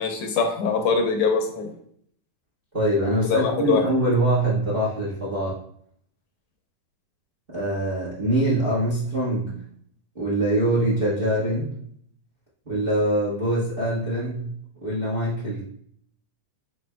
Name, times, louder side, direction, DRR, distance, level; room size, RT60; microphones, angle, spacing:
voice 1, 0.0-1.7 3.2-3.8, left 5 dB, 80° left, 3 dB, 2.2 m, -23 dB
voice 2, 2.7-5.6 7.5-9.6 10.1-11.7 12.6-14.5 14.8-15.6, right 1 dB, 65° right, -7 dB, 0.5 m, -24 dB
5.1 x 4.6 x 2.2 m, 0.63 s
omnidirectional pair, 3.5 m